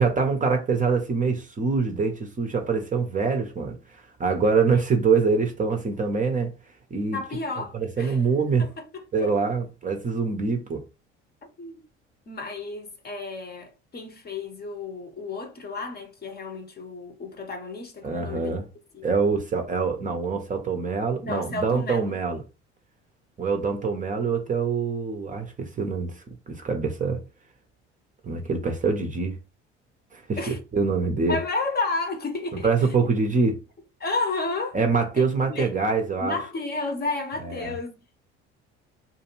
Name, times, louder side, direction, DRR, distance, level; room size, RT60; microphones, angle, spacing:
voice 1, 0.0-3.7 4.2-6.5 6.9-7.2 7.7-8.7 9.1-10.8 18.0-18.6 19.0-22.4 23.4-26.1 26.5-27.2 28.2-29.4 30.1-30.4 30.7-31.4 32.6-33.6 34.7-36.4 37.4-37.7, right 4 dB, 25° right, 0.6 m, -24 dB
voice 2, 7.1-8.2 8.6-9.3 11.6-11.8 12.3-18.5 18.9-19.1 21.2-22.1 30.4-30.6 31.3-32.7 34.0-34.8 35.2-35.7 36.2-38.2, left 3 dB, 30° left, 0.8 m, -32 dB
2.5 x 2.3 x 3.0 m
figure-of-eight pair, 60°, 33 cm